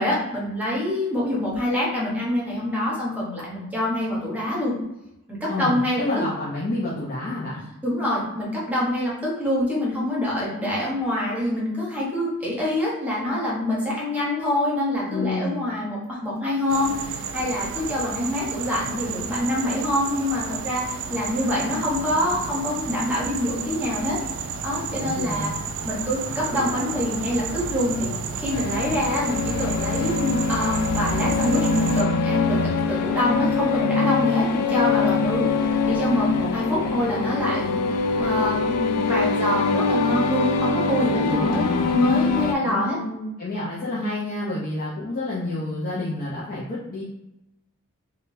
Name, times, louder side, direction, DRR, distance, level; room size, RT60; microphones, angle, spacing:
voice 1, 0.0-4.7 5.3-6.0 7.8-24.2 24.6-25.5 25.8-32.6 32.9-35.5 35.9-37.8 38.2-43.0, left 1 dB, 5° right, -6 dB, 0.9 m, -25 dB
voice 2, 5.5-7.6 15.1-15.6 25.0-25.6 41.3-42.0 42.6-47.0, left 2 dB, 40° left, -7 dB, 0.6 m, -29 dB
sound 1, 16.7-32.0, right 5 dB, 60° right, 0.3 m, -32 dB
sound 2, 28.5-42.5, left 4 dB, 90° left, 0.3 m, -24 dB
3.6 x 2.3 x 2.6 m, 0.88 s
head